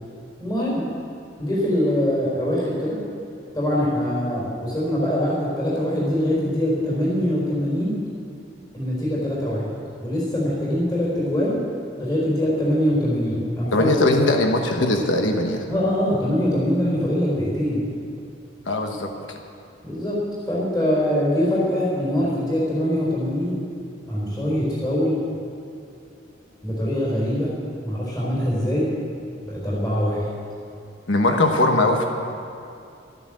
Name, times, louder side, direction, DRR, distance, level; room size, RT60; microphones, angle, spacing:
voice 1, 0.4-0.9 1.4-3.0 3.5-8.0 8.7-9.7 10.0-11.6 12.0-13.9 15.7-17.9 19.8-20.2 20.5-23.6 24.1-25.2 26.6-27.5 27.8-28.9 29.4-30.3, equal, 20° left, -6 dB, 4.4 m, -23 dB
voice 2, 13.7-15.6 18.7-19.1 31.1-32.1, left 2 dB, 80° left, 3 dB, 1.2 m, -20 dB
13.0 x 11.0 x 7.6 m, 2.6 s
head